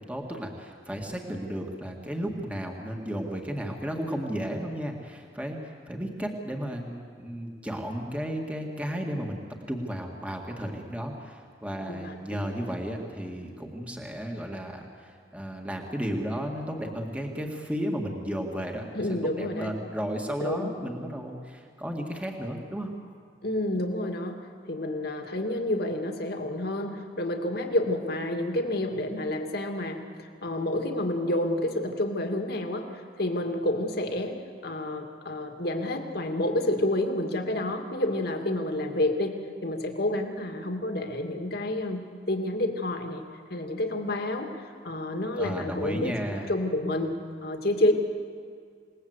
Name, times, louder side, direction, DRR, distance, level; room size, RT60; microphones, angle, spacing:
voice 1, 0.0-9.4 9.7-22.9 45.3-46.5, equal, 10° right, 1 dB, 2.0 m, -34 dB
voice 2, 18.9-19.7 20.4-20.7 23.4-24.4 24.7-43.2 43.5-47.2 47.4-47.9, left 1 dB, 60° left, 4 dB, 2.3 m, -29 dB
28.0 x 19.5 x 8.1 m, 2.1 s
head